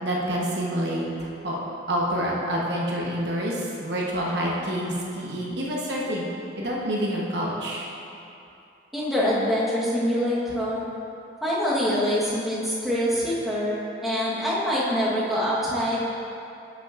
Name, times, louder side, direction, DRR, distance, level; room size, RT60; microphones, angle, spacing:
voice 1, 0.0-1.6 1.9-6.3 6.6-7.9, equal, 65° right, -4 dB, 1.0 m, -27 dB
voice 2, 8.9-10.8 11.4-13.7 14.0-16.0, equal, ahead, -9 dB, 1.2 m, -25 dB
11.0 x 5.8 x 2.5 m, 2.8 s
head